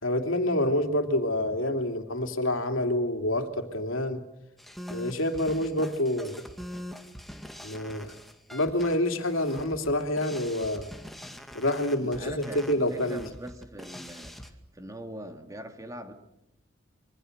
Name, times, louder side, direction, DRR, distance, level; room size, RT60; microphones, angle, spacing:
voice 1, 0.0-4.2 4.9-6.4 7.6-8.1 8.5-10.9 11.5-13.2, left 1 dB, 85° left, 6 dB, 2.9 m, -27 dB
sound 1, 4.6-14.5, equal, ahead, 2.1 m, -43 dB
voice 2, 12.0-14.3 14.7-16.1, right 1 dB, 15° right, 5 dB, 2.7 m, -41 dB
26.5 x 23.5 x 6.7 m, 0.84 s
head